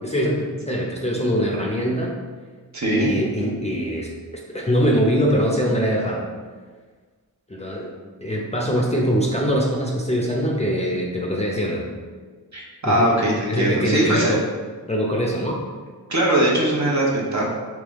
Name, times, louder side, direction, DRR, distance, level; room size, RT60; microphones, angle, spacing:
voice 1, 0.0-2.1 3.0-6.2 7.5-7.9 8.2-11.9 12.8-13.1 13.5-14.4 14.9-15.6, equal, 15° left, -2 dB, 0.6 m, -23 dB
voice 2, 2.7-3.1 12.5-14.4 16.1-17.5, right 1 dB, 50° right, -3 dB, 1.0 m, -20 dB
3.5 x 3.1 x 3.5 m, 1.5 s
cardioid pair, 60°, 38 cm